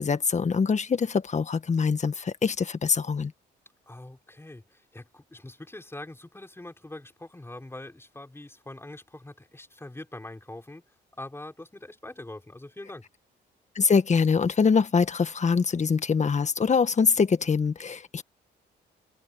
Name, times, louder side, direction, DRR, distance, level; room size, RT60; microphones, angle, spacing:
voice 1, 0.0-3.3 13.7-18.2, left 5 dB, 35° left, 1.6 m, -24 dB
voice 2, 3.9-10.8 11.2-13.1, left 2 dB, 10° left, 5.0 m, -43 dB
cardioid pair, 90°, 20 cm